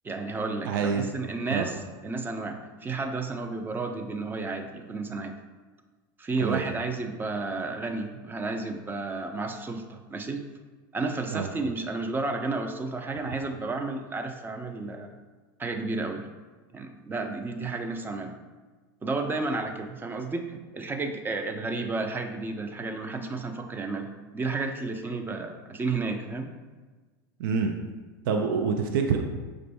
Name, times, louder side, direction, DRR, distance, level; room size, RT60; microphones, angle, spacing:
voice 1, 0.0-5.3 6.2-10.4 10.9-15.1 15.6-16.3 16.7-18.4 19.0-26.5, right 3 dB, 15° right, 5 dB, 0.5 m, -32 dB
voice 2, 0.7-1.1 1.5-1.7 6.4-6.8 11.3-11.5 27.4-27.7 28.3-29.2, right 6 dB, 70° right, 4 dB, 0.4 m, -26 dB
5.2 x 2.5 x 3.4 m, 1.4 s
hypercardioid pair, 95°, 12 cm